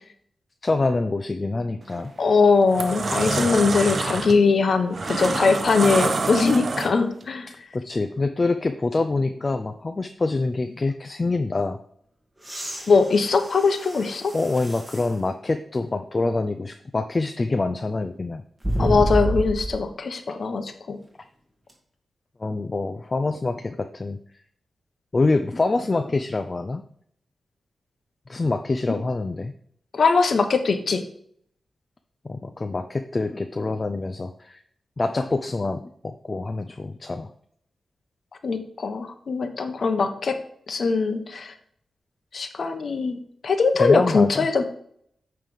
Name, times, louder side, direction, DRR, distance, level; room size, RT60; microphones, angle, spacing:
voice 1, 0.6-2.1 7.7-11.8 14.3-18.4 22.4-24.2 25.1-26.8 28.3-29.5 32.3-34.6 35.0-37.3 43.7-44.5, left 3 dB, 35° left, 7 dB, 0.5 m, -25 dB
sound 1, 1.8-2.1 2.5-7.2, right 3 dB, 55° right, 0.7 m, -27 dB
voice 2, 2.2-7.5 12.9-14.3 18.8-21.0 28.9-29.0 29.9-31.0 38.4-40.4 40.7-41.5 42.3-44.6, left 4 dB, 65° left, 7 dB, 1.0 m, -21 dB
sound 2, 12.4-15.2 15.8-15.9 18.6-19.9 21.7-21.8, right 1 dB, 20° right, 2.1 m, -29 dB
8.9 x 3.4 x 5.4 m, 0.66 s
cardioid pair, 70°, 0 cm